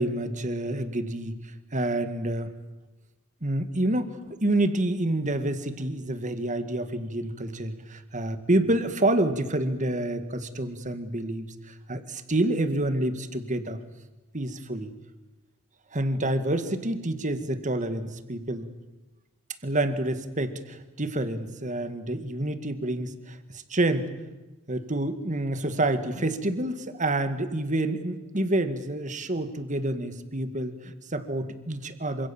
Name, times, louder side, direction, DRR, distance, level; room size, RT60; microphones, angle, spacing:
voice 1, 0.0-1.4 1.7-2.5 3.4-13.8 14.3-14.9 15.9-18.6 19.6-24.1 24.7-32.3, right 1 dB, 35° right, 10 dB, 1.9 m, -28 dB
27.0 x 26.0 x 7.3 m, 1.1 s
head